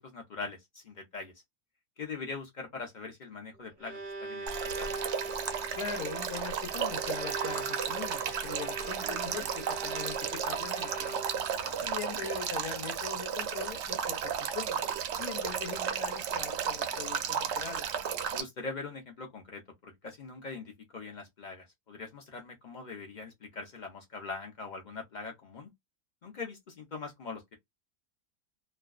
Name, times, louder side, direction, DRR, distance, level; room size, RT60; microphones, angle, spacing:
voice 1, 0.0-1.3 2.0-4.5 4.8-4.9 11.5-11.9 18.3-25.7 26.2-27.6, left 4 dB, 55° left, 0.5 m, -42 dB
Bowed string instrument, 3.5-11.6, right 3 dB, 30° right, 0.4 m, -41 dB
Male speech man speaking / Stream / Trickle dribble, 4.5-18.4, right 7 dB, 70° right, 0.7 m, -34 dB
voice 2, 5.8-11.2 11.8-14.8 15.2-17.8, left 7 dB, 80° left, 1.1 m, -41 dB
2.6 x 2.2 x 2.3 m
omnidirectional pair, 1.6 m